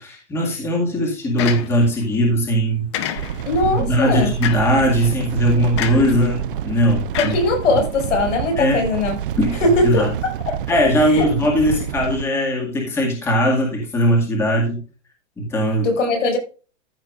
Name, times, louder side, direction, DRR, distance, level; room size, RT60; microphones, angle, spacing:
voice 1, 0.0-2.9 3.7-7.3 8.6-8.8 9.4-10.1 10.7-14.8 15.4-15.9, equal, 5° left, 0 dB, 2.0 m, -19 dB
sound 1, 1.4-2.0 2.9-3.6 4.4-4.8 5.8-6.2 7.1-8.0, left 10 dB, 25° left, 0.7 m, -28 dB
sound 2, 3.2-12.2, right 10 dB, 50° right, 0.5 m, -28 dB
voice 2, 3.5-4.3 7.2-9.1 9.6-10.6 11.0-11.3 15.8-16.4, left 2 dB, 85° left, 3 dB, 6.1 m, -20 dB
14.5 x 7.3 x 2.5 m, 0.34 s
supercardioid pair, 175°, 36 cm